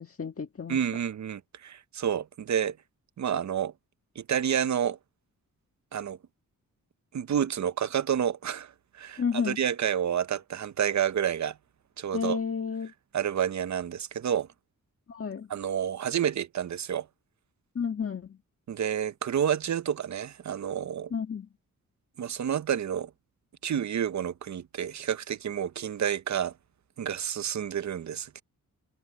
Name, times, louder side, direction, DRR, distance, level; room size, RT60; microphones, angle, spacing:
voice 1, 0.0-0.8 9.2-9.6 12.1-12.9 15.1-15.5 17.7-18.4 21.1-21.5, left 6 dB, 40° left, 1.6 m, -31 dB
voice 2, 0.7-2.8 3.2-3.7 4.2-5.0 5.9-6.2 7.1-11.6 12.0-12.4 13.1-14.5 15.5-17.1 18.7-21.1 22.2-23.1 23.6-26.5 27.0-28.4, right 9 dB, 55° right, 0.6 m, -29 dB
wide cardioid pair, 110°, 34 cm